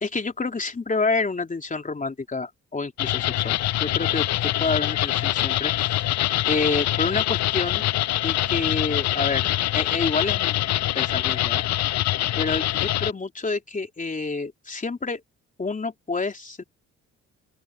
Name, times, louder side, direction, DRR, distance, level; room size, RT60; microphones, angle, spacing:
voice 1, 0.0-6.1 6.5-7.8 8.2-10.6 10.9-11.6 12.4-15.2 15.6-16.6, left 3 dB, 25° left, 3.6 m, -28 dB
sound 1, 3.0-13.1, left 14 dB, 65° left, 0.5 m, -24 dB
open air
cardioid pair, 90°, 30 cm